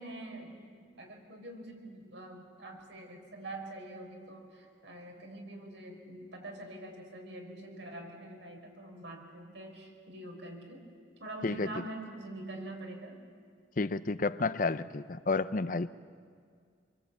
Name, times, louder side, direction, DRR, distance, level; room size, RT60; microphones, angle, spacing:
voice 1, 0.0-10.8 11.2-13.2, right 1 dB, 80° right, 1 dB, 5.7 m, -45 dB
voice 2, 13.8-15.9, left 3 dB, 45° left, 13 dB, 0.7 m, -31 dB
27.0 x 23.5 x 8.6 m, 2.1 s
head